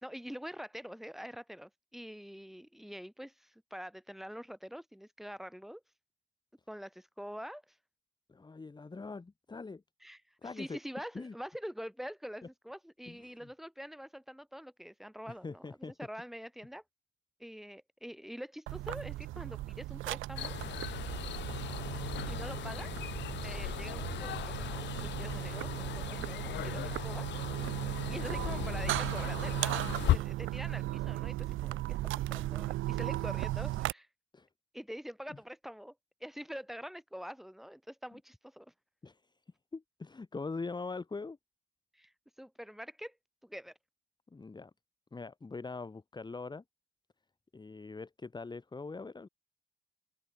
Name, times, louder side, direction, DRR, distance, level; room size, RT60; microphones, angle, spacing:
voice 1, 0.0-5.8 6.7-7.8 10.0-16.8 17.4-20.6 22.0-22.9 23.4-27.5 27.8-32.0 32.3-34.1 34.7-35.9 36.2-38.7 41.9-42.1 42.4-43.2 43.4-43.8, equal, ahead, 4.2 m, -45 dB
voice 2, 8.3-9.8 10.4-10.8 11.1-11.3 13.1-13.5 15.3-15.9 28.1-28.2 34.3-34.5 35.3-35.4 38.1-38.2 39.0-39.2 39.7-41.4 44.3-44.7 45.1-46.6 47.5-49.3, left 4 dB, 20° left, 1.5 m, -42 dB
sound 1, 18.7-33.9, right 16 dB, 85° right, 1.0 m, -36 dB
sound 2, 20.4-30.2, left 13 dB, 65° left, 0.5 m, -37 dB
open air
cardioid pair, 90°, 20 cm